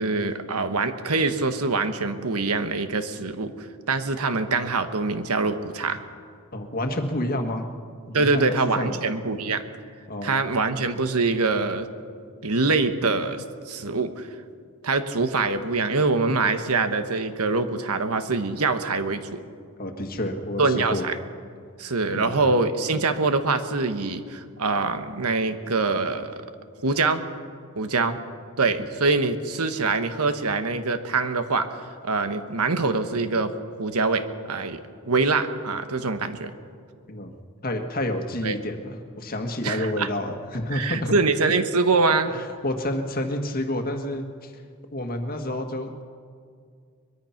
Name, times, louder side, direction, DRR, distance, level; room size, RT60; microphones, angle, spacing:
voice 1, 0.0-6.0 8.1-9.6 10.2-11.9 12.4-14.3 14.8-19.4 20.6-21.2 21.8-26.4 26.8-27.2 27.8-28.2 28.6-31.7 32.0-33.5 33.8-36.5 38.4-38.6 39.6-40.1 40.7-42.3, right 3 dB, 80° right, 9 dB, 1.3 m, -24 dB
voice 2, 6.5-7.6 8.1-9.0 10.1-10.4 19.8-21.0 22.1-22.4 37.1-37.3 37.6-41.1 42.3-44.5 44.9-46.0, left 1 dB, 40° left, 5 dB, 1.7 m, -29 dB
23.0 x 21.5 x 5.9 m, 2.2 s
head